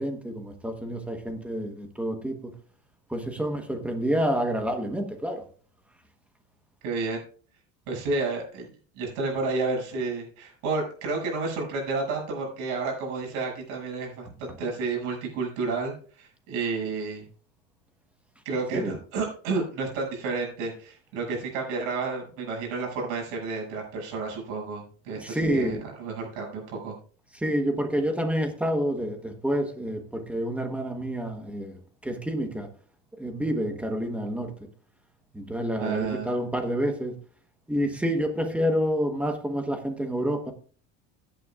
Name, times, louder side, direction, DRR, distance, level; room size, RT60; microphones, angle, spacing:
voice 1, 0.0-2.4 3.1-5.4 18.7-18.9 25.1-25.8 27.3-31.7 32.0-32.7 33.2-34.5 35.3-37.2 37.7-40.5, equal, 5° right, 1.1 m, -28 dB
voice 2, 6.8-7.2 7.9-8.7 9.0-17.3 18.4-26.9 35.8-36.3, right 3 dB, 90° right, 6.8 m, -31 dB
16.0 x 10.0 x 2.4 m
cardioid pair, 170°, 35 cm